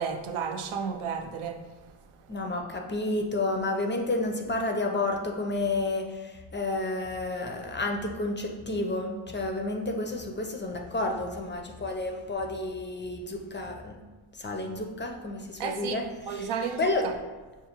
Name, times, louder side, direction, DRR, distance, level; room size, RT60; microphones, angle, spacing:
voice 1, 0.0-1.6 15.6-17.1, right 6 dB, 80° right, 0.5 m, -32 dB
voice 2, 2.3-14.0 14.4-17.1, left 2 dB, 25° left, 0.4 m, -31 dB
5.4 x 2.4 x 2.8 m
cardioid pair, 55°, 49 cm